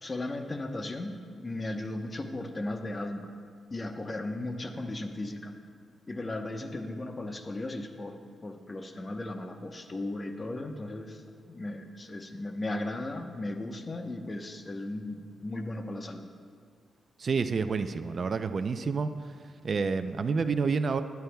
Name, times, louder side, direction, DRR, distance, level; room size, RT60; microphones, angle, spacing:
voice 1, 0.0-3.3 3.7-5.5 6.1-11.2 11.5-16.3, left 2 dB, 30° left, 5 dB, 1.0 m, -36 dB
voice 2, 17.2-19.1 19.6-21.0, right 5 dB, 50° right, 10 dB, 0.5 m, -28 dB
21.5 x 10.5 x 2.3 m, 2.2 s
cardioid pair, 80°, 0 cm